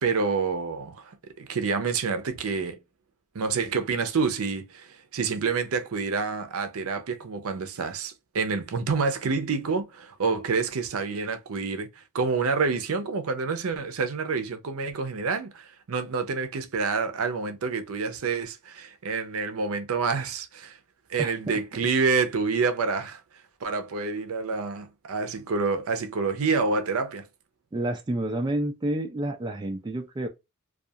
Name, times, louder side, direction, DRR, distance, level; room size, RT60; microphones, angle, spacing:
voice 1, 0.0-2.8 3.3-11.9 12.1-20.8 21.1-23.2 23.6-27.3, right 4 dB, 75° right, 0.5 m, -28 dB
voice 2, 27.7-30.3, right 1 dB, 20° right, 0.3 m, -29 dB
2.3 x 2.3 x 2.7 m
head